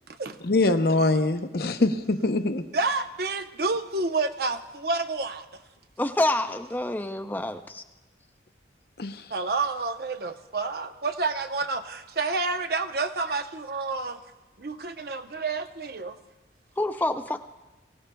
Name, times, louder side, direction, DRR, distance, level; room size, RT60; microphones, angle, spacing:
voice 1, 0.4-2.6 9.0-9.2, left 2 dB, 55° left, 7 dB, 0.7 m, -23 dB
voice 2, 2.7-5.5 9.3-14.2 14.6-16.2, right 3 dB, 55° right, 8 dB, 0.7 m, -29 dB
voice 3, 6.0-7.8 16.8-17.4, left 1 dB, 10° left, 8 dB, 0.4 m, -27 dB
23.0 x 16.5 x 2.3 m, 1.1 s
head